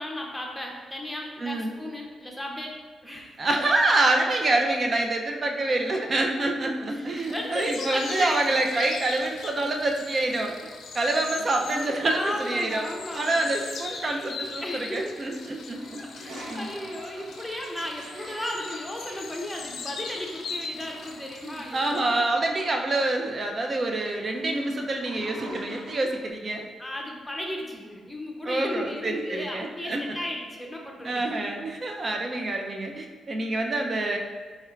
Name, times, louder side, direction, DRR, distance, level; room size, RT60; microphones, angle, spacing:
voice 1, 0.0-2.8 3.0-3.6 6.9-8.5 11.7-13.5 14.6-15.2 16.0-22.8 26.8-31.3, left 1 dB, 10° left, 0 dB, 0.7 m, -35 dB
voice 2, 1.4-1.7 3.4-10.5 10.9-12.9 13.1-16.0 16.5-16.7 21.4-26.7 28.5-30.2 31.0-34.2, right 2 dB, 40° right, 2 dB, 0.5 m, -26 dB
sound 1, 7.1-22.0, left 4 dB, 70° left, 0.3 m, -40 dB
Toilet flush, 15.6-26.3, equal, 75° right, 0.7 m, -45 dB
4.3 x 3.2 x 2.4 m, 1.5 s
cardioid pair, 85°, 0 cm